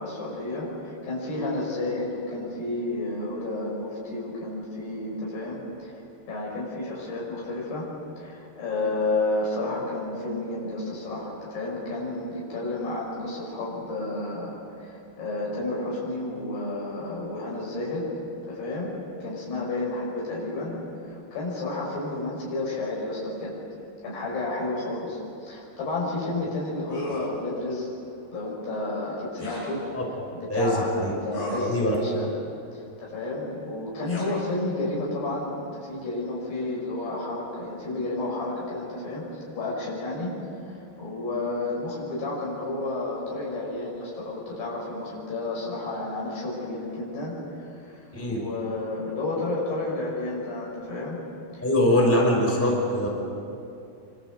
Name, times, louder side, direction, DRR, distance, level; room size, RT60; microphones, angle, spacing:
voice 1, 0.0-5.9 6.3-7.9 8.2-18.1 18.5-18.9 19.2-20.8 21.1-23.6 24.0-27.9 28.3-30.0 30.3-32.3 32.7-39.3 39.6-40.4 40.7-51.2 51.5-51.7, left 2 dB, 90° left, -4 dB, 8.0 m, -31 dB
sound 1, 26.9-27.3 29.4-29.7 31.3-31.7 34.0-34.3, equal, 55° left, 8.7 m, -37 dB
voice 2, 30.5-31.1 31.6-32.0 48.1-48.4 51.6-53.1, left 1 dB, 5° left, -2 dB, 5.2 m, -22 dB
26.5 x 25.0 x 8.2 m, 2.6 s
omnidirectional pair, 4.6 m